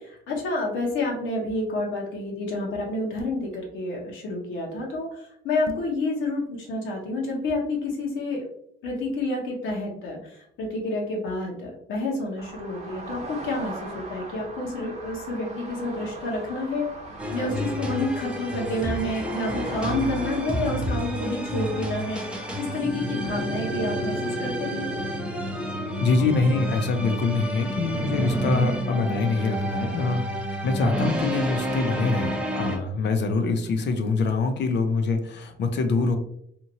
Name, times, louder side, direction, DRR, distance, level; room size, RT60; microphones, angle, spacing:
voice 1, 0.0-8.5 8.8-16.9 17.3-22.2 22.6-24.9, left 2 dB, 80° left, -2 dB, 1.0 m, -29 dB
sound 1, 3.2-3.6 5.6-6.0, right 6 dB, 80° right, 0.4 m, -37 dB
sound 2, 12.4-22.8, right 2 dB, 35° right, 0.8 m, -40 dB
sound 3, 17.2-32.8, equal, 5° right, 0.6 m, -30 dB
voice 2, 26.0-36.2, left 3 dB, 60° left, 6 dB, 0.5 m, -25 dB
2.8 x 2.5 x 2.8 m, 0.69 s
cardioid pair, 90°, 20 cm